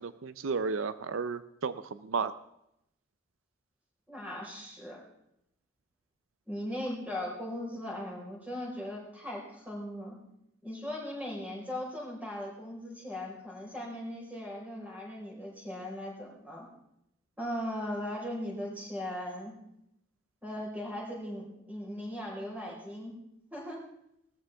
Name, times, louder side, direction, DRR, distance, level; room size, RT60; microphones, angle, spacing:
voice 1, 0.0-2.3, right 5 dB, 80° right, 13 dB, 0.5 m, -33 dB
voice 2, 4.1-5.0 6.5-10.2 10.6-16.7 17.4-19.5 20.4-23.1 23.5-23.8, left 1 dB, 5° right, -3 dB, 4.6 m, -38 dB
18.5 x 13.5 x 3.5 m, 0.80 s
head